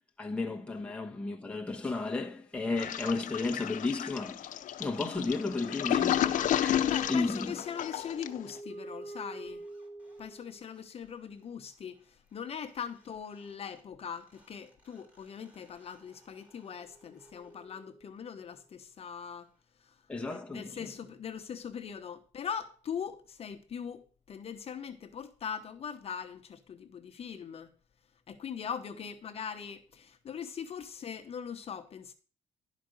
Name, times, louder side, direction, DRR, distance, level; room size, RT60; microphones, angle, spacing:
voice 1, 0.2-4.5 4.8-7.5 20.1-20.9, left 3 dB, 10° left, 1.1 m, -33 dB
Toilet flush, 2.8-8.5, left 11 dB, 70° left, 0.7 m, -31 dB
sound 1, 5.5-10.8 12.7-12.8 13.0-18.5, equal, 10° right, 2.9 m, -49 dB
voice 2, 6.8-9.6 10.2-12.0 12.3-19.5 20.5-27.7 28.3-32.1, left 7 dB, 45° left, 1.0 m, -41 dB
11.5 x 5.1 x 6.4 m
cardioid pair, 145°, 14 cm